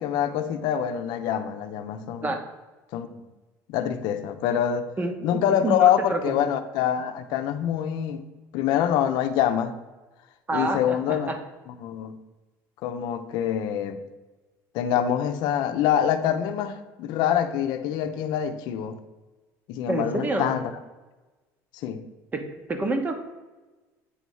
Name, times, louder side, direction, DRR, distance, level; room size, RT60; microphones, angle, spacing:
voice 1, 0.0-2.3 2.9-3.2 3.7-4.9 5.2-8.2 8.5-9.7 10.5-11.3 11.7-12.1 12.8-14.0 14.7-19.0 19.7-20.7 21.8-22.0, left 9 dB, 70° left, 8 dB, 0.7 m, -25 dB
voice 2, 5.0-6.3 10.5-11.4 19.9-20.5 22.3-23.2, right 2 dB, 20° right, 6 dB, 1.0 m, -28 dB
8.5 x 3.1 x 5.4 m, 1.2 s
cardioid pair, 115°, 8 cm